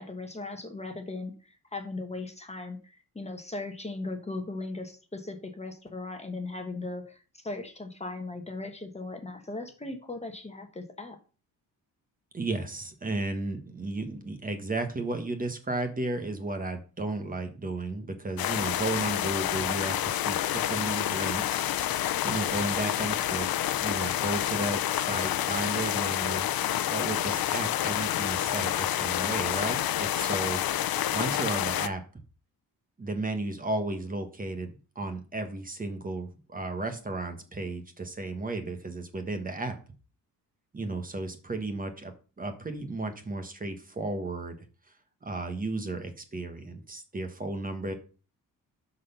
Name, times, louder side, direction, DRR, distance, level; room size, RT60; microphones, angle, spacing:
voice 1, 0.0-7.2 7.4-11.2, left 2 dB, 20° left, 5 dB, 1.3 m, -38 dB
voice 2, 12.3-23.5 23.8-30.6 31.1-32.0 33.0-39.8 40.7-44.6 45.2-47.9, right 2 dB, 25° right, 7 dB, 1.4 m, -34 dB
sound 1, 18.4-31.9, left 12 dB, 75° left, 0.7 m, -28 dB
12.5 x 4.3 x 5.7 m, 0.36 s
wide cardioid pair, 150°, 36 cm